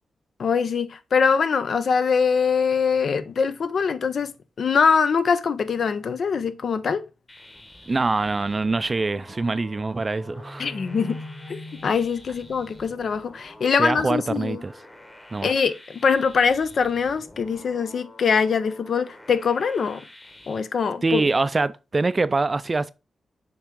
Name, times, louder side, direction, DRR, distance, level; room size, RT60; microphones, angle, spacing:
voice 1, 0.4-4.3 4.6-7.0 10.6-11.2 11.5-14.6 15.4-20.0 20.5-21.2, left 6 dB, 65° left, 0.6 m, -23 dB
sound 1, 7.3-20.6, left 1 dB, 20° left, 1.3 m, -48 dB
voice 2, 7.9-10.7 13.8-14.7 15.3-15.5 21.0-22.9, right 3 dB, 30° right, 0.4 m, -24 dB
sound 2, 10.2-13.6, left 1 dB, 45° left, 3.6 m, -41 dB
7.1 x 3.5 x 3.7 m
cardioid pair, 80°, 0 cm